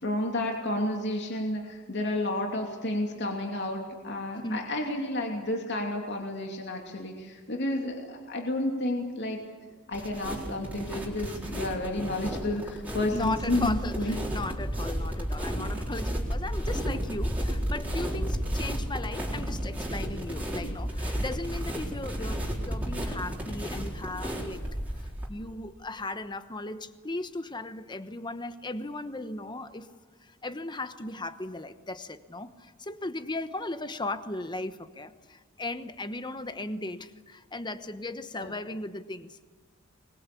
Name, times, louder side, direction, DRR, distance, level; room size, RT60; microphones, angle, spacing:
voice 1, 0.0-9.4 9.9-14.2 38.3-38.6, left 1 dB, 55° left, 1 dB, 2.8 m, -31 dB
sound 1, 9.9-25.3, equal, 10° right, 4.1 m, -32 dB
voice 2, 13.1-24.6 24.9-29.9 30.2-39.4, left 2 dB, 20° left, 11 dB, 1.1 m, -37 dB
25.0 x 21.5 x 8.5 m, 1.3 s
head